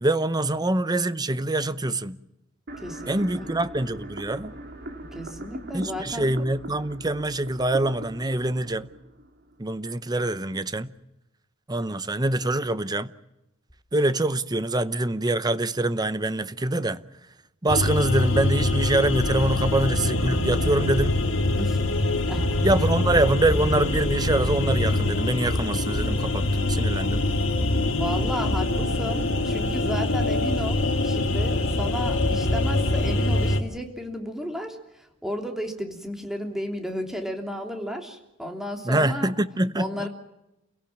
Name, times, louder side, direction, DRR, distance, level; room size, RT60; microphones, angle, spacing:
voice 1, 0.0-2.2 3.1-4.5 5.7-8.9 9.6-10.9 11.7-13.1 13.9-17.0 17.6-21.2 22.6-27.2 38.8-40.1, right 2 dB, 20° right, 0.8 m, -25 dB
sound 1, 2.7-9.7, right 1 dB, 55° right, 3.6 m, -40 dB
voice 2, 2.8-3.5 5.1-6.3 21.6-21.8 22.2-22.6 27.9-39.3 39.7-40.1, equal, ahead, 3.2 m, -33 dB
sound 2, 17.7-33.6, left 2 dB, 70° left, 2.3 m, -24 dB
28.5 x 17.0 x 7.4 m
head